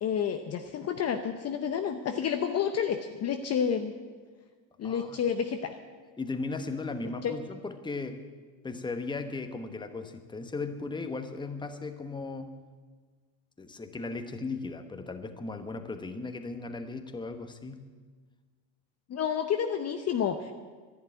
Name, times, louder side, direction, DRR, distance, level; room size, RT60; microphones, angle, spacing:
voice 1, 0.0-3.9 4.8-5.8 7.2-7.3 19.1-20.5, left 8 dB, 30° left, 6 dB, 0.8 m, -30 dB
voice 2, 4.8-5.2 6.2-8.2 8.6-12.6 13.6-17.9, left 3 dB, 10° left, 7 dB, 1.1 m, -37 dB
11.0 x 11.0 x 9.7 m, 1.5 s
supercardioid pair, 115°, 50 cm